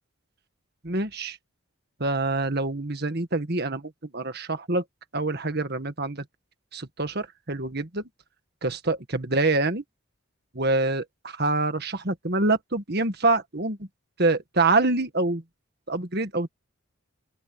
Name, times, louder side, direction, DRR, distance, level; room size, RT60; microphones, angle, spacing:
voice 1, 0.8-1.4 2.0-4.8 5.1-6.3 6.7-8.0 8.6-9.8 10.5-13.9 14.2-15.4 15.9-16.5, right 2 dB, 45° right, 1.7 m, -26 dB
open air
head